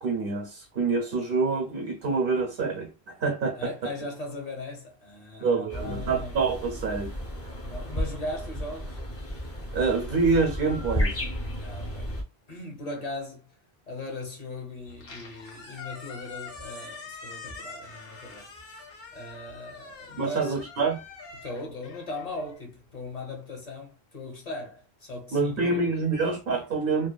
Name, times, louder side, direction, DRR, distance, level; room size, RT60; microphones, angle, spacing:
voice 1, 0.0-3.9 5.4-7.1 9.7-11.3 20.2-21.0 25.3-27.1, right 4 dB, 65° right, 0.8 m, -26 dB
voice 2, 3.6-6.4 7.6-9.0 11.6-12.1 12.5-13.5 13.9-20.6 21.4-25.9, left 2 dB, 40° left, 0.9 m, -38 dB
sound 1, 5.7-12.2, equal, 20° left, 0.4 m, -33 dB
Squeak, 14.9-23.1, left 4 dB, 65° left, 0.9 m, -44 dB
2.8 x 2.1 x 2.3 m
omnidirectional pair, 1.0 m